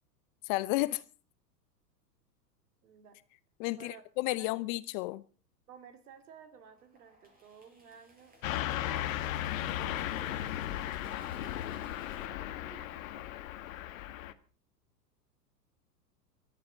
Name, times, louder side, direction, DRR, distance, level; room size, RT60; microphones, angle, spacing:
voice 1, 0.4-1.0 3.6-5.2, left 20 dB, 35° left, 0.7 m, -32 dB
voice 2, 2.8-3.2 3.7-4.0 4.4-4.7 5.7-8.3 8.8-9.1 9.7-13.4, right 7 dB, 65° right, 3.5 m, -55 dB
sound 1, 6.7-12.2, right 1 dB, 15° right, 6.6 m, -59 dB
Car passing by / Truck, 8.4-14.3, left 13 dB, 55° left, 1.5 m, -36 dB
18.5 x 13.5 x 5.3 m
figure-of-eight pair, 100°, 49 cm